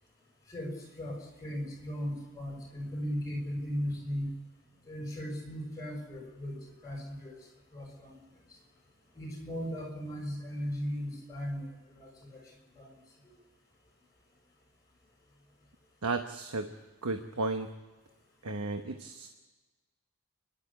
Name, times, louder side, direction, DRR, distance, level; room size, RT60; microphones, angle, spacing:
voice 1, 0.5-4.4 4.9-6.6 6.8-7.4 7.7-8.2 9.1-12.4 12.8-13.0, equal, 15° left, -1 dB, 6.3 m, -37 dB
voice 2, 16.0-16.7 17.0-17.7 18.4-19.3, right 3 dB, 85° right, 6 dB, 1.1 m, -33 dB
29.0 x 11.5 x 8.5 m, 1.2 s
head